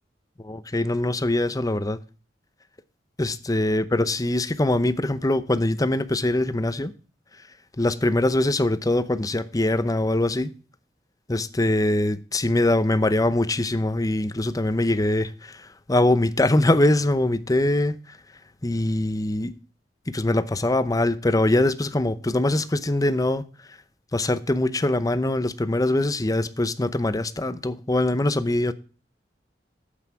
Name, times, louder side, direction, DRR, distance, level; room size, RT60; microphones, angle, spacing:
voice 1, 0.4-2.0 3.2-6.9 7.8-10.5 11.3-18.2 18.6-19.5 20.1-23.4 23.7-23.8 24.1-28.7, left 1 dB, 20° left, 0.7 m, -23 dB
9.2 x 8.3 x 4.7 m
head